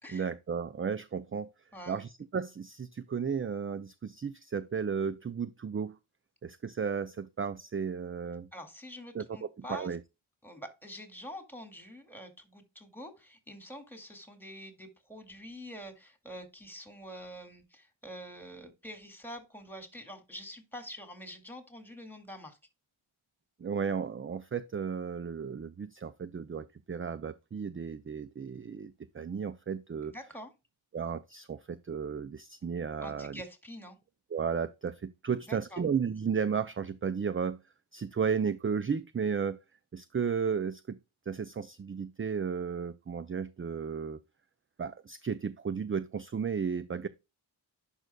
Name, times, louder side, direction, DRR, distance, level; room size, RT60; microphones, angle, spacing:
voice 1, 0.1-1.5 1.9-6.0 6.4-8.5 9.1-10.0 23.6-30.1 30.9-33.4 34.3-37.6 37.9-39.6 39.9-41.0 41.3-44.2 44.8-47.1, right 6 dB, 25° right, 0.4 m, -34 dB
voice 2, 1.7-2.1 8.5-9.9 10.4-22.6 30.1-30.5 33.0-34.0 35.3-35.8, equal, 5° left, 2.2 m, -46 dB
11.0 x 5.3 x 2.2 m
wide cardioid pair, 55°, 50 cm